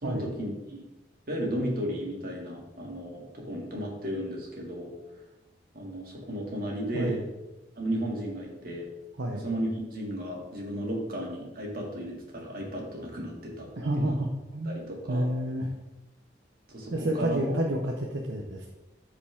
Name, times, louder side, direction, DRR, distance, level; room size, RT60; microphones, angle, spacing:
voice 1, 0.0-0.8 1.3-4.9 5.7-7.2 7.8-8.9 9.3-13.7 14.0-14.2 14.7-15.2 16.7-17.4, right 1 dB, 55° right, -2 dB, 2.5 m, -34 dB
voice 2, 13.8-14.3 14.5-14.8 15.1-15.7 16.9-18.7, right 1 dB, 80° right, 0 dB, 0.9 m, -29 dB
13.0 x 5.1 x 3.6 m, 0.99 s
head